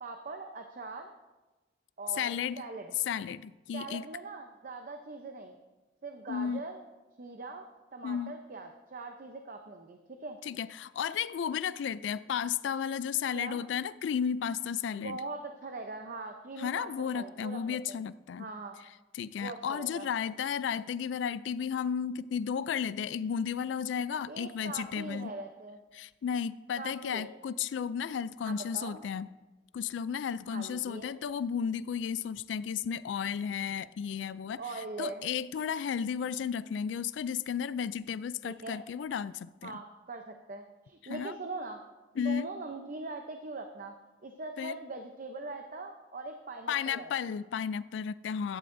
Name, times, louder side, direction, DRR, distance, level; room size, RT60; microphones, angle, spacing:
voice 1, 0.0-1.1 2.0-2.9 3.7-5.6 6.0-6.8 7.2-7.7 7.9-10.4 13.3-13.6 15.0-18.0 18.4-18.8 19.4-20.1 24.3-25.8 26.8-27.3 28.4-29.0 30.5-31.1 34.6-35.3 38.4-38.8 39.6-41.8 42.1-44.0 44.2-47.3, right 3 dB, 50° right, 5 dB, 0.7 m, -42 dB
voice 2, 2.1-2.6 3.1-4.1 6.3-6.6 8.0-8.4 10.4-15.2 16.6-18.5 19.1-25.3 25.9-29.3 29.7-39.7 41.1-41.4 42.2-42.5 44.6-44.8 46.7-48.6, left 7 dB, 85° left, 16 dB, 0.3 m, -33 dB
16.0 x 11.5 x 2.6 m, 1.1 s
head